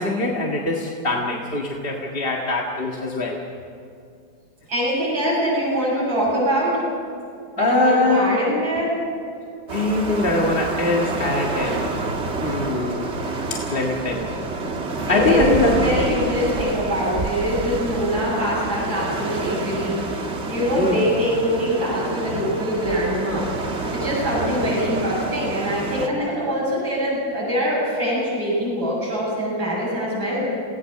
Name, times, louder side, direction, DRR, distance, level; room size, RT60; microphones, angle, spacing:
voice 1, 0.0-3.4 7.6-8.4 9.7-12.0 12.4-13.1 13.5-14.4 15.1-15.7 20.8-21.1, left 2 dB, 30° left, -1 dB, 1.9 m, -22 dB
voice 2, 4.7-6.8 7.6-9.0 14.9-20.0 20.5-23.5 23.9-30.5, equal, 85° right, -7 dB, 8.9 m, -23 dB
sound 1, 9.7-26.1, right 3 dB, 35° right, 1.7 m, -28 dB
28.5 x 18.0 x 6.6 m, 2.4 s
omnidirectional pair, 2.1 m